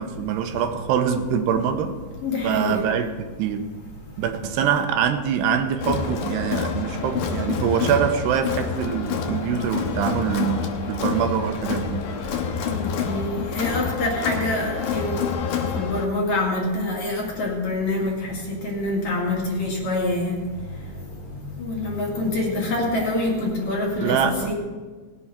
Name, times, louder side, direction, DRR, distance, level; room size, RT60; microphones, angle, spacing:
voice 1, 0.0-2.0 2.4-3.1 3.4-3.7 4.2-12.1 24.0-24.5, right 7 dB, 90° right, 3.0 m, -24 dB
voice 2, 2.2-2.8 12.6-15.3 15.7-20.4 21.3-24.5, left 2 dB, 50° left, 3.3 m, -26 dB
Crowd, 5.8-16.0, left 6 dB, 70° left, 2.1 m, -28 dB
19.0 x 8.4 x 5.1 m
omnidirectional pair, 4.7 m